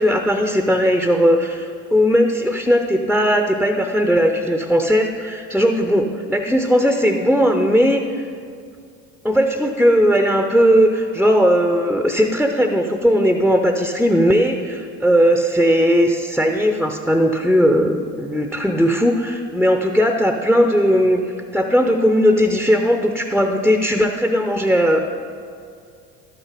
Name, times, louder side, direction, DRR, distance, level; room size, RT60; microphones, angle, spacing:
voice 1, 0.0-8.2 9.2-25.1, equal, ahead, 5 dB, 0.5 m, -17 dB
12.0 x 6.7 x 4.9 m, 2.3 s
hypercardioid pair, 65°, 49 cm